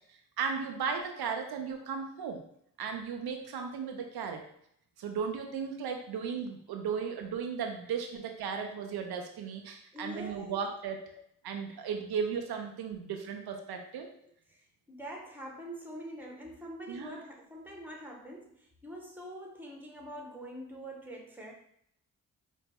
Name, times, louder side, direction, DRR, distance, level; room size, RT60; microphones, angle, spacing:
voice 1, 0.1-2.4 2.8-4.4 5.0-11.0 11.4-14.1 16.9-17.2, right 6 dB, 80° right, 4 dB, 0.6 m, -36 dB
voice 2, 9.9-10.6 11.1-11.2 11.7-11.8 13.9-21.5, equal, 5° right, 0 dB, 1.2 m, -45 dB
4.8 x 2.1 x 3.5 m, 0.69 s
cardioid pair, 45°, 38 cm